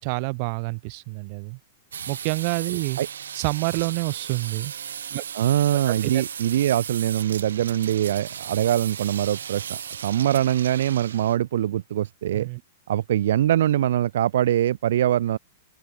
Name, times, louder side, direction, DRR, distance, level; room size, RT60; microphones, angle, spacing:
voice 1, 0.0-1.6 2.1-3.0 3.3-4.7 5.1-5.2 6.0-6.2 12.3-12.6, right 32 dB, 50° right, 7.1 m, -28 dB
sound 1, 1.9-11.4, right 8 dB, 85° right, 7.6 m, -36 dB
voice 2, 5.3-12.5 12.9-15.4, right 11 dB, 70° right, 3.1 m, -23 dB
open air
hypercardioid pair, 125°, 0 cm